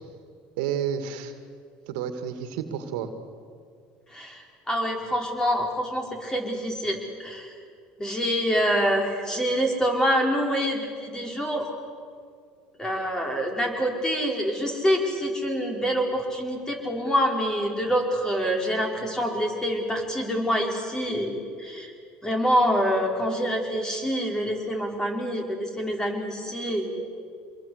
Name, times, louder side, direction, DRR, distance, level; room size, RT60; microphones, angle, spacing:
voice 1, 0.6-1.3 1.9-3.1, right 8 dB, 80° right, 8 dB, 2.2 m, -30 dB
voice 2, 4.1-7.5 8.0-11.7 12.8-21.9 22.2-27.2, equal, 15° left, 2 dB, 5.1 m, -26 dB
26.0 x 21.5 x 8.2 m, 2.2 s
supercardioid pair, 100°, 4 cm